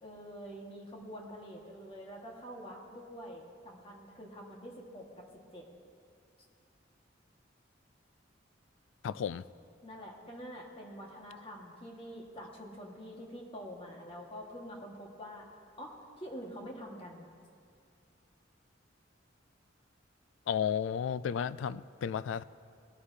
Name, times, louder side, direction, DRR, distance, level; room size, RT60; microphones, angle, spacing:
voice 1, 0.0-5.1 5.5-5.7 9.8-15.5 15.8-17.3, equal, 30° left, -1 dB, 1.7 m, -46 dB
voice 2, 9.0-9.4 20.5-22.4, left 8 dB, 80° left, 16 dB, 0.3 m, -33 dB
20.5 x 11.5 x 2.8 m, 2.4 s
head